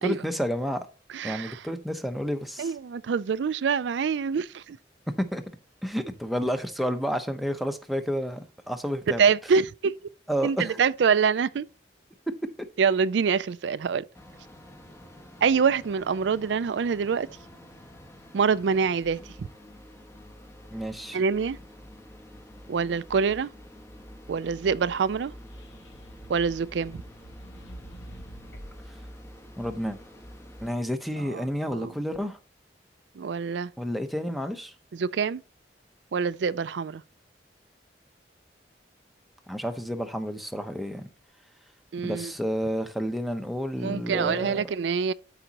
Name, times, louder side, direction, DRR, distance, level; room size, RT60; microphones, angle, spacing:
voice 1, 0.0-0.9 1.2-2.7 5.3-5.4 5.8-9.2 10.3-10.8 20.7-21.2 29.6-30.0 30.6-32.4 33.8-34.7 39.5-41.1 42.0-44.6, equal, ahead, 0.8 m, -30 dB
voice 2, 1.1-1.6 2.6-4.8 9.2-9.9 10.4-11.7 12.8-14.0 15.4-17.3 18.3-19.5 21.1-21.6 22.7-23.5 24.3-25.3 26.3-27.0 31.3-31.4 31.7-31.9 33.2-33.7 34.9-35.4 36.1-37.0 41.9-42.3 43.8-45.1, right 6 dB, 85° right, 0.4 m, -25 dB
sound 1, 14.1-30.8, equal, 15° left, 1.1 m, -48 dB
sound 2, 25.3-28.9, equal, 85° left, 2.1 m, -46 dB
12.5 x 5.0 x 2.9 m
head